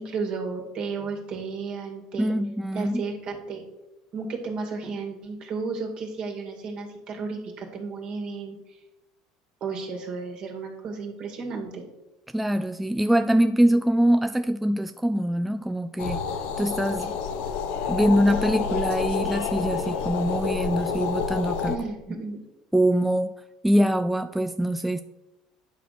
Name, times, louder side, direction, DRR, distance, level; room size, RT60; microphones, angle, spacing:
voice 1, 0.0-2.3 2.7-3.6 4.1-8.8 9.6-11.8 21.7-22.4, right 4 dB, 45° right, 2 dB, 2.2 m, -33 dB
voice 2, 2.2-3.0 12.3-16.2 16.6-17.2 17.9-21.7 22.7-23.3 23.6-25.0, right 1 dB, 5° right, 9 dB, 0.3 m, -23 dB
sound 1, 16.0-21.8, left 6 dB, 70° left, 0.8 m, -28 dB
9.1 x 4.2 x 6.6 m, 0.99 s
supercardioid pair, 115°, 2 cm